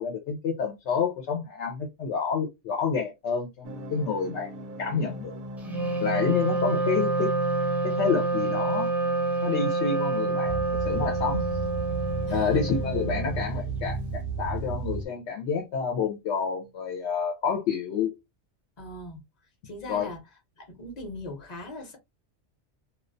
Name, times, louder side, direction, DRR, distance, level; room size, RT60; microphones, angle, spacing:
voice 1, 0.0-4.5 4.8-5.4 6.0-7.3 7.8-8.9 9.4-11.4 12.3-18.1 19.9-20.1, left 6 dB, 75° left, 0.9 m, -29 dB
sound 1, 3.6-15.1, right 3 dB, 60° right, 0.6 m, -35 dB
Wind instrument woodwind instrument, 5.6-13.5, right 3 dB, 5° right, 0.4 m, -28 dB
voice 2, 12.3-12.8 18.8-19.2 19.6-20.2 20.6-22.0, left 1 dB, 40° left, 0.8 m, -40 dB
2.3 x 2.1 x 2.5 m
omnidirectional pair, 1.2 m